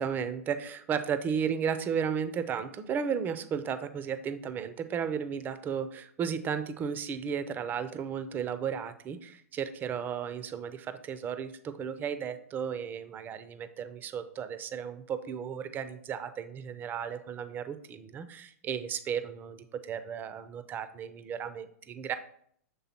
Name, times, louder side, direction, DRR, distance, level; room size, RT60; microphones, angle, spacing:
voice 1, 0.0-22.1, right 7 dB, 25° right, 11 dB, 0.5 m, -34 dB
7.0 x 3.6 x 4.3 m, 0.65 s
hypercardioid pair, 120°, 8 cm